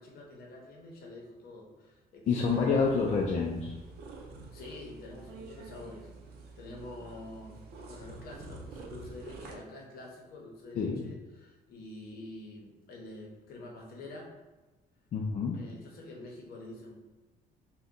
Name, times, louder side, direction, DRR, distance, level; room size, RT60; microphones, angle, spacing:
voice 1, 0.0-2.7 4.5-14.3 15.6-16.9, left 2 dB, 65° left, 0 dB, 0.8 m, -47 dB
voice 2, 2.3-3.8 10.7-11.1 15.1-15.6, left 5 dB, 45° left, -1 dB, 0.4 m, -28 dB
sound 1, 2.4-9.6, right 3 dB, 70° right, 0.5 m, -48 dB
2.6 x 2.2 x 3.6 m, 1.1 s
cardioid pair, 110°, 17 cm